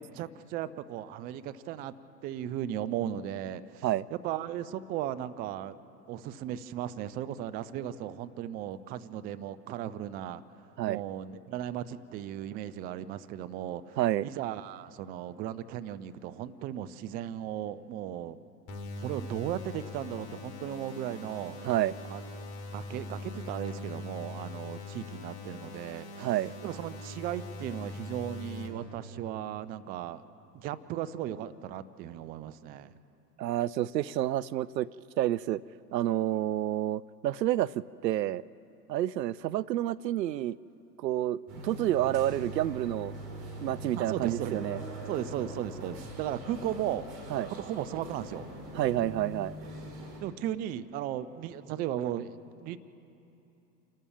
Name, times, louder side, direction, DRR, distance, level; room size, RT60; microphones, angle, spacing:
voice 1, 0.0-1.9 2.2-3.8 4.1-5.8 6.1-10.4 10.9-18.4 19.0-21.5 22.1-22.4 22.7-26.3 26.6-30.2 30.5-32.9 43.9-44.6 45.1-47.0 47.5-48.5 50.2-52.4 52.6-52.8, right 11 dB, 20° right, 14 dB, 0.4 m, -36 dB
voice 2, 14.0-14.3 21.6-21.9 26.2-26.5 33.4-34.9 35.2-35.6 35.9-38.4 38.9-40.6 41.0-43.1 43.6-44.8 47.3-47.5 48.8-49.5, right 13 dB, 80° right, 20 dB, 0.6 m, -29 dB
sound 1, 18.7-28.7, left 2 dB, 45° left, 3.4 m, -42 dB
sound 2, 41.5-50.2, right 1 dB, 45° right, 5.0 m, -42 dB
28.5 x 13.0 x 7.2 m, 2.9 s
hypercardioid pair, 90°, 50 cm